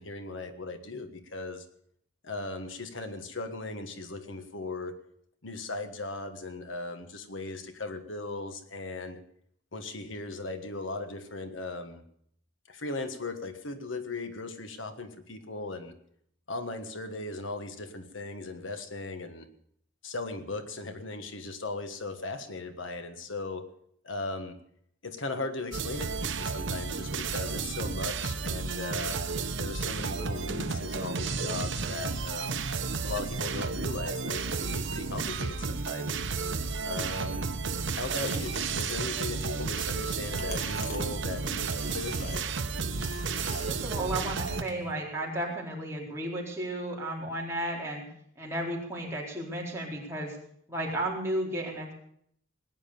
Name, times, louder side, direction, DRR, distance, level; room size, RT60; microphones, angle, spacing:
voice 1, 0.0-1.7 2.2-4.9 5.4-9.2 9.7-12.0 12.7-16.0 16.5-19.5 20.0-23.6 24.0-24.6 25.0-29.2 29.6-32.6 33.0-36.2 36.8-37.4 37.9-42.4, left 2 dB, 85° left, 8 dB, 1.5 m, -38 dB
sound 1, 25.7-44.6, right 4 dB, 75° right, 0.9 m, -32 dB
sound 2, 37.9-44.9, left 1 dB, 35° left, 3.0 m, -45 dB
voice 2, 43.6-48.0 48.4-50.3 50.7-51.9, right 1 dB, 15° right, -4 dB, 4.2 m, -33 dB
19.0 x 9.9 x 6.9 m, 0.67 s
head